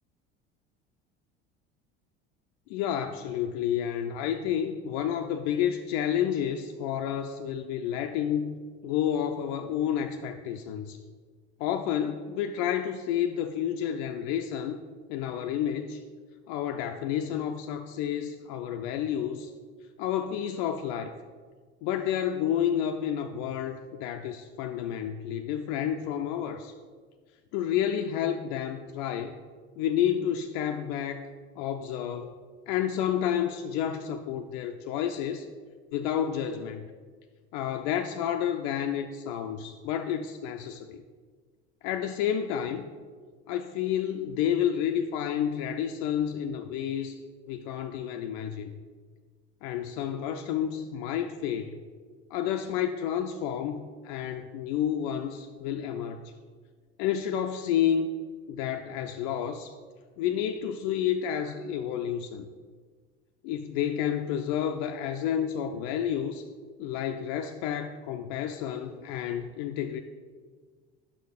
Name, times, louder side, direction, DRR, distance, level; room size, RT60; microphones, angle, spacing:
voice 1, 2.7-8.6 8.8-11.0 11.6-14.8 15.1-16.0 16.5-19.5 20.0-21.1 21.8-26.7 27.5-29.4 29.8-31.3 31.6-32.3 32.7-35.5 35.9-36.8 37.5-41.0 41.8-42.9 43.5-47.2 47.5-48.7 49.6-51.8 52.3-56.3 57.0-58.1 58.5-59.7 60.2-62.5 63.4-66.4 66.8-70.0, left 9 dB, 70° left, 5 dB, 0.5 m, -30 dB
5.6 x 4.6 x 5.2 m, 1.6 s
hypercardioid pair, 80°, 30 cm